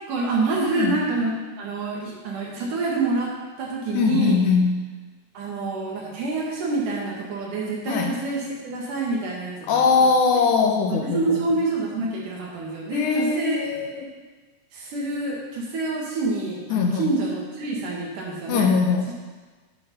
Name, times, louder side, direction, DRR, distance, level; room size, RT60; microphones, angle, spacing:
voice 1, 0.1-3.3 3.6-4.4 5.3-9.8 10.9-13.6 13.9-14.0 14.7-18.7, right 3 dB, 75° right, -3 dB, 3.4 m, -27 dB
voice 2, 0.6-1.0 3.9-4.8 7.9-8.1 9.6-11.4 12.9-14.1 16.7-17.1 18.5-19.1, left 5 dB, 75° left, 3 dB, 2.2 m, -21 dB
9.4 x 6.4 x 5.3 m, 1.3 s
omnidirectional pair, 3.7 m